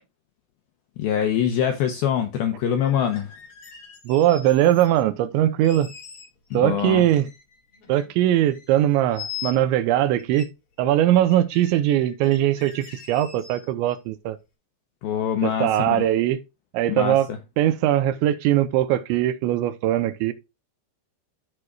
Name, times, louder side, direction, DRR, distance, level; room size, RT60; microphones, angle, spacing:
voice 1, 1.0-3.3 6.5-7.0 15.0-16.1 16.9-17.4, left 9 dB, 80° left, 2.1 m, -24 dB
sound 1, 2.7-5.0 5.6-6.6 6.8-8.2 8.5-9.8 10.2-10.4 10.8-10.9 11.2-14.0, left 9 dB, 60° left, 1.4 m, -42 dB
voice 2, 4.1-5.9 6.5-7.3 7.9-10.5 10.8-14.4 15.4-16.4 16.7-17.3 17.6-20.3, right 12 dB, 85° right, 3.1 m, -21 dB
13.5 x 4.8 x 2.4 m
omnidirectional pair, 5.2 m